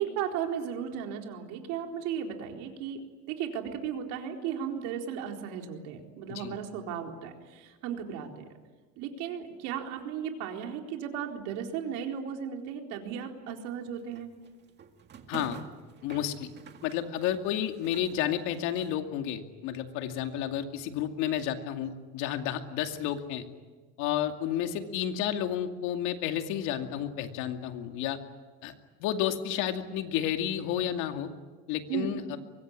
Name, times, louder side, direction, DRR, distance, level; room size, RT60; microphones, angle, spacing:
voice 1, 0.0-3.0 3.3-8.4 9.0-14.3 31.9-32.2, right 8 dB, 85° right, 2 dB, 4.2 m, -35 dB
sound 1, 13.8-19.0, right 7 dB, 35° right, 2.0 m, -48 dB
voice 2, 15.3-15.6 16.0-16.5 16.8-23.4 24.0-28.2 28.6-28.7 29.0-31.3 31.7-32.4, left 10 dB, 80° left, 6 dB, 2.5 m, -31 dB
24.0 x 22.5 x 9.8 m, 1.3 s
cardioid pair, 150°, 30 cm